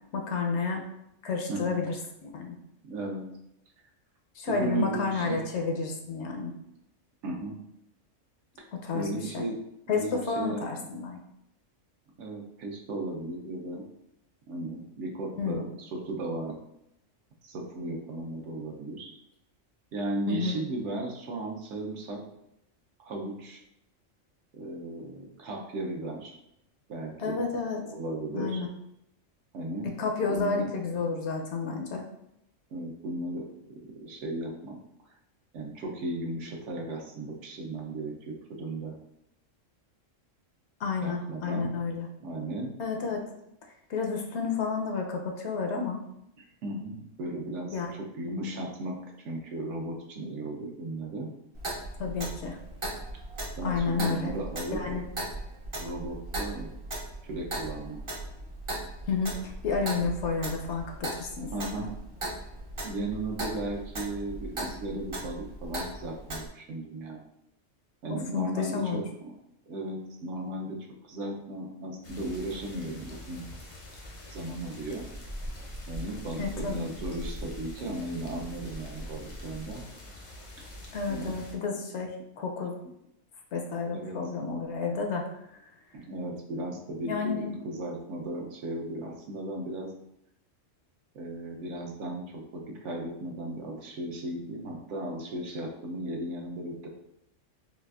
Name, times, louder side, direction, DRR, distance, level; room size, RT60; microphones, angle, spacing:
voice 1, 0.1-0.8 1.2-2.6 4.4-6.5 8.7-9.1 9.3-9.4 9.9-11.2 15.4-15.6 20.3-20.6 27.2-27.8 28.3-28.7 30.0-32.0 40.8-42.1 42.8-43.2 43.9-46.0 47.7-47.9 52.0-52.6 53.6-54.3 54.7-55.0 59.1-61.5 68.1-69.0 76.4-76.9 80.9-82.7 83.5-85.3 87.0-87.6, left 4 dB, 70° left, 2 dB, 0.8 m, -31 dB
voice 2, 1.5-1.8 2.8-3.2 4.5-5.4 7.2-7.6 8.9-9.6 9.9-10.6 12.2-13.8 14.5-16.5 17.4-19.1 19.9-22.2 23.0-23.6 24.5-26.4 26.9-27.4 27.9-28.6 29.5-29.9 30.3-30.7 32.7-34.8 35.5-39.0 41.0-41.7 42.2-42.7 46.4-49.0 49.2-51.3 53.6-54.8 55.8-56.7 57.2-58.0 61.5-62.0 62.8-67.2 68.0-69.3 69.7-70.8 71.0-73.4 74.3-75.1 75.9-79.8 81.1-81.4 83.9-84.2 85.9-89.9 91.1-96.9, right 1 dB, 70° right, 0 dB, 0.9 m, -36 dB
Clock, 51.6-66.5, right 1 dB, 40° right, 0.4 m, -38 dB
sound 1, 72.0-81.5, equal, 45° left, 0.4 m, -42 dB
4.1 x 2.3 x 2.3 m, 0.80 s
omnidirectional pair, 1.3 m